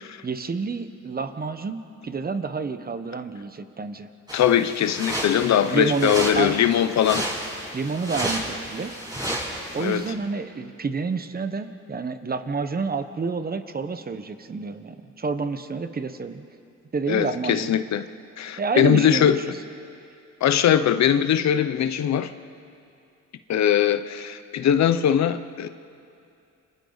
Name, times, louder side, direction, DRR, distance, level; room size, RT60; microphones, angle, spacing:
voice 1, 0.2-1.8 2.0-4.1 5.6-6.6 7.7-8.9 9.7-16.4 16.9-17.7 18.6-19.3, right 4 dB, 30° right, 9 dB, 1.2 m, -29 dB
voice 2, 4.3-7.3 9.8-10.1 17.1-18.0 18.4-19.4 20.4-22.3 23.5-25.7, left 9 dB, 65° left, 12 dB, 0.9 m, -21 dB
sound 1, 4.3-10.1, right 1 dB, 15° right, 7.0 m, -32 dB
29.0 x 25.5 x 4.1 m, 2.6 s
cardioid pair, 90°, 30 cm